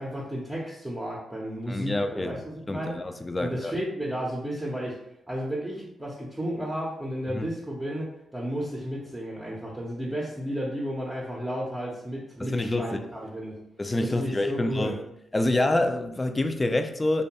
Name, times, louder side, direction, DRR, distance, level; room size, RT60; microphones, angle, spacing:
voice 1, 0.0-2.9 3.4-5.0 5.3-13.6 14.0-15.0, equal, 15° right, -4 dB, 0.6 m, -33 dB
voice 2, 1.7-2.3 2.7-3.7 7.3-7.5 12.4-13.0 13.8-15.0 15.3-17.2, left 2 dB, 25° left, 7 dB, 0.3 m, -27 dB
2.6 x 2.2 x 2.9 m, 0.80 s
supercardioid pair, 60°, 0 cm